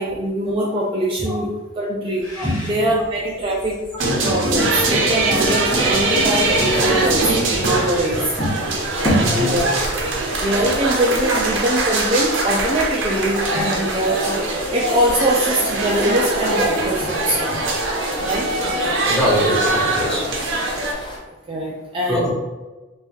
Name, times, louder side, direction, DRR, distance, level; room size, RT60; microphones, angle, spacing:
voice 1, 0.0-1.5 1.8-2.3 2.6-3.8 4.2-8.3 9.4-9.6 10.4-14.4 14.7-17.6 18.2-18.5 21.5-22.3, right 1 dB, 25° right, -3 dB, 0.4 m, -22 dB
Bird, 2.1-8.5, equal, 80° left, 1.3 m, -39 dB
sound 1, 4.0-20.9, right 2 dB, 70° right, 0.6 m, -22 dB
sound 2, 5.7-21.2, left 1 dB, 25° left, 0.5 m, -35 dB
voice 2, 9.0-9.6 13.5-13.6 19.1-20.2 22.1-22.3, equal, 5° left, -6 dB, 0.9 m, -21 dB
3.5 x 2.6 x 2.9 m, 1.2 s
head